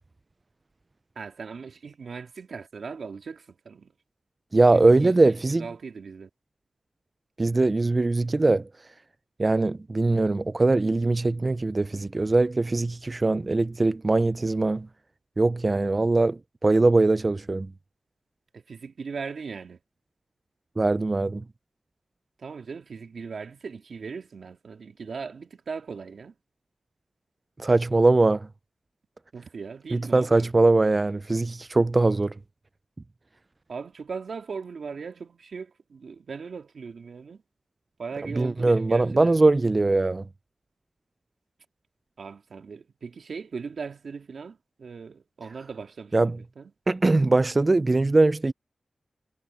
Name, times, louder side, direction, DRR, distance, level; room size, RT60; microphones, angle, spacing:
voice 1, 1.2-3.9 4.7-6.3 18.5-19.8 22.4-26.4 29.3-30.5 33.7-37.4 38.0-39.4 42.2-46.7, right 5 dB, 75° right, 2.7 m, -39 dB
voice 2, 4.5-5.6 7.4-8.7 9.4-14.9 15.4-17.7 20.8-21.4 27.6-28.5 29.9-32.3 38.4-40.2 46.1-46.4 46.9-48.5, right 2 dB, 30° right, 0.3 m, -21 dB
wide cardioid pair, 105°, 0 cm